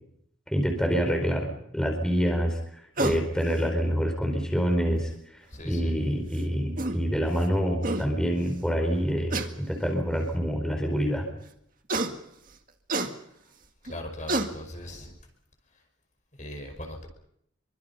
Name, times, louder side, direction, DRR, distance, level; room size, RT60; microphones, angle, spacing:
voice 1, 0.5-11.3, equal, 5° left, 2 dB, 4.6 m, -27 dB
sound 1, 3.0-3.2 4.7-4.8 6.4-6.5 6.8-7.0 7.5-7.6 7.8-8.0 9.3-9.5 10.3-10.4 11.9-12.1 12.9-13.1 13.9-14.0 14.3-14.5, right 2 dB, 45° right, 2.0 m, -28 dB
voice 2, 5.5-5.9 13.8-15.2 16.3-17.1, left 1 dB, 40° left, 3 dB, 5.1 m, -39 dB
27.0 x 24.5 x 5.7 m, 0.72 s
head